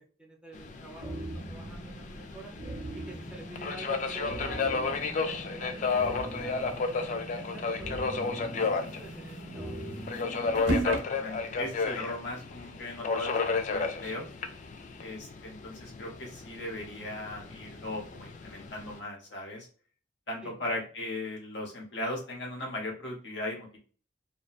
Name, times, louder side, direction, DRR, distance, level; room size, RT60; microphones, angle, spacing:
voice 1, 0.2-2.5 2.9-4.8 5.2-9.8 10.4-10.8 20.4-20.7, right 2 dB, 5° right, -2 dB, 0.5 m, -48 dB
Subway metro underground, 0.5-19.0, left 4 dB, 40° left, 0.3 m, -33 dB
sound 1, 1.0-11.0, right 1 dB, 50° right, 0.6 m, -42 dB
sound 2, 5.9-7.0 7.4-7.5 7.7-7.8 8.4-11.0, right 2 dB, 85° right, 0.7 m, -35 dB
voice 2, 10.6-13.4 13.7-14.3 15.0-19.7 20.3-23.8, left 1 dB, 85° left, -1 dB, 1.1 m, -38 dB
2.5 x 2.1 x 2.3 m, 0.43 s
head